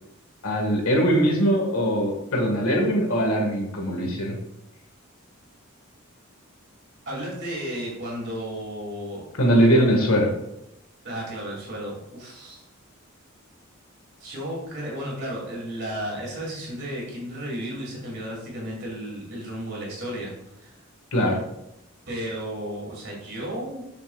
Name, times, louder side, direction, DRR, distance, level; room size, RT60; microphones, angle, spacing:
voice 1, 0.4-4.4 9.4-10.3 21.1-21.4, equal, 85° left, 0 dB, 1.6 m, -21 dB
voice 2, 7.1-9.3 11.0-12.6 14.2-20.8 22.1-23.8, equal, 50° right, -3 dB, 2.4 m, -33 dB
7.3 x 5.9 x 2.3 m, 0.84 s
head